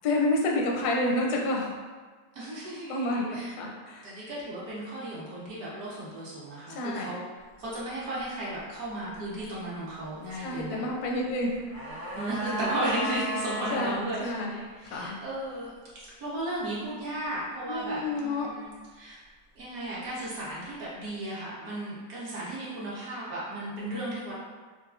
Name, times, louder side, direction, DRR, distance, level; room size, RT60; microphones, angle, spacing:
voice 1, 0.0-1.8 2.9-4.1 6.7-7.1 10.4-11.6 13.7-15.2 17.7-18.5, left 2 dB, 85° left, -1 dB, 1.1 m, -29 dB
voice 2, 2.3-7.2 7.6-10.9 12.1-19.2 19.5-24.4, right 1 dB, 65° right, -7 dB, 1.4 m, -35 dB
sound 1, 11.4-14.0 14.2-14.3, equal, 85° right, 1.4 m, -34 dB
4.1 x 2.4 x 2.4 m, 1.4 s
omnidirectional pair, 1.6 m